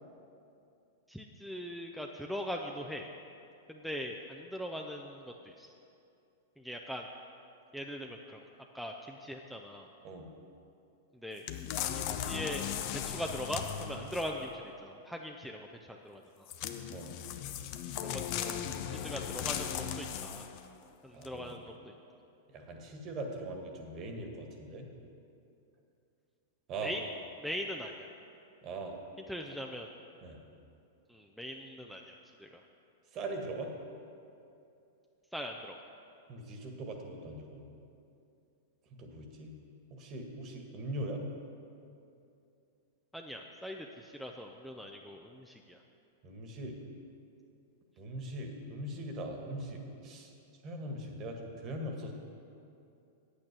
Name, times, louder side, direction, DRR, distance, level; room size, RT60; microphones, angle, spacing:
voice 1, 1.1-3.1 3.7-5.7 6.6-7.1 7.7-8.4 8.7-9.9 11.2-11.4 11.9-12.7 12.9-16.5 18.0-18.6 18.9-20.4 21.0-21.9 26.8-27.1 27.4-28.1 29.3-29.9 31.1-32.1 32.4-32.6 35.3-35.8 43.1-45.8, equal, ahead, 1 dB, 0.6 m, -41 dB
sound 1, 11.5-14.5 16.5-20.7 21.2-21.3, left 9 dB, 50° left, 0.7 m, -37 dB
voice 2, 21.1-21.5 22.5-24.9 26.7-26.9 28.6-28.9 30.2-30.4 33.1-33.7 36.3-37.6 38.9-39.5 39.9-41.2 46.2-46.8 48.0-50.3 50.6-52.1, right 1 dB, 35° right, 3 dB, 1.6 m, -41 dB
8.7 x 8.6 x 6.1 m, 2.6 s
hypercardioid pair, 105°, 0 cm